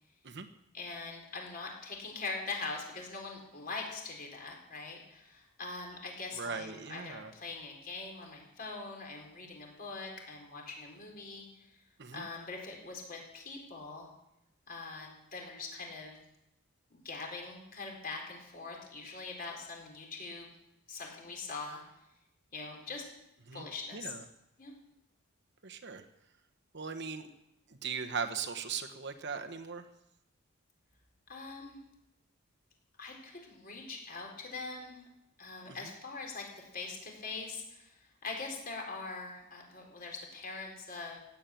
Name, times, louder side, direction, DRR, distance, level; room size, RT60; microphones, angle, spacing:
voice 1, 0.7-11.8 12.1-14.1 14.7-16.2 16.9-20.5 20.9-21.8 22.5-23.0 23.5-24.1 24.6-24.7 31.3-31.8 33.0-35.0 35.4-41.2, left 3 dB, 40° left, 0 dB, 4.3 m, -43 dB
voice 2, 6.3-7.3 12.0-12.3 23.5-23.7 23.9-24.2 25.6-26.0 26.7-27.3 27.7-29.9 35.6-35.9, right 5 dB, 55° right, 6 dB, 1.1 m, -39 dB
16.5 x 8.5 x 9.0 m, 0.85 s
head